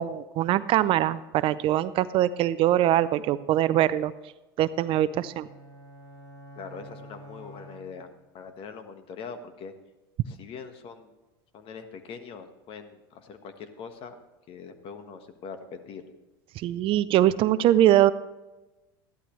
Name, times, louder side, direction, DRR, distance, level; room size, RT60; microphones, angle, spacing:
voice 1, 0.0-4.1 4.6-5.5 16.6-18.1, right 12 dB, 50° right, 15 dB, 0.5 m, -22 dB
sound 1, 4.9-8.4, equal, 25° left, 3.3 m, -48 dB
voice 2, 6.6-8.1 8.3-9.7 10.3-11.1 11.5-14.2 14.5-16.0, left 5 dB, 45° left, 8 dB, 1.5 m, -42 dB
14.5 x 11.5 x 3.2 m, 1.1 s
hypercardioid pair, 100°, 12 cm